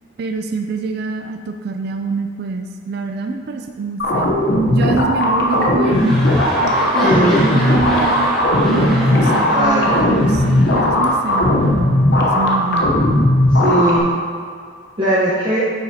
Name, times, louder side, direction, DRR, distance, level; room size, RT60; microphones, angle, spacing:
voice 1, 0.2-4.3 4.7-6.2 6.6-8.4 8.7-13.0, right 4 dB, 50° right, 4 dB, 0.3 m, -25 dB
sound 1, 4.0-14.0, left 1 dB, 55° left, 0.8 m, -16 dB
sound 2, 5.4-11.7 12.4-12.5, equal, ahead, 1.7 m, -26 dB
voice 2, 7.0-7.4 9.4-10.0 13.5-14.1 15.0-15.7, right 1 dB, 25° right, -9 dB, 0.9 m, -18 dB
8.9 x 5.7 x 2.8 m, 2.1 s
head